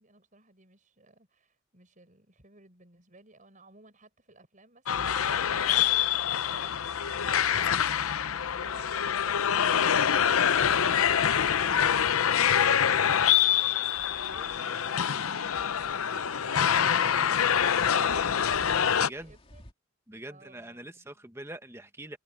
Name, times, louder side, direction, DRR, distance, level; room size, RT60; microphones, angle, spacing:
voice 1, 0.0-7.8 8.2-10.6 13.9-19.6 20.3-21.2, right 2 dB, 40° right, 6.0 m, -57 dB
sound 1, 4.9-19.1, left 8 dB, 85° left, 0.7 m, -25 dB
sound 2, 5.0-12.8, left 1 dB, 55° left, 1.3 m, -51 dB
sound 3, 8.6-19.7, left 1 dB, 30° left, 3.2 m, -54 dB
voice 2, 19.0-19.3 20.1-22.2, right 1 dB, 10° right, 1.6 m, -43 dB
head